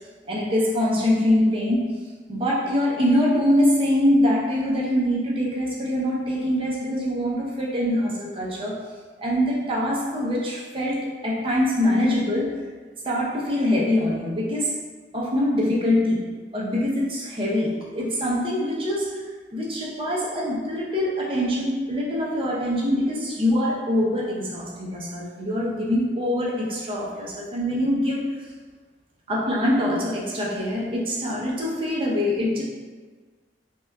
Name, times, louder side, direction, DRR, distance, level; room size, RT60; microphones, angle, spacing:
voice 1, 0.3-1.9 2.3-8.8 9.2-12.5 13.0-14.8 15.1-16.3 16.5-19.2 19.5-28.3 29.3-32.6, left 1 dB, 30° right, -5 dB, 0.7 m, -24 dB
5.7 x 2.4 x 2.3 m, 1.4 s
head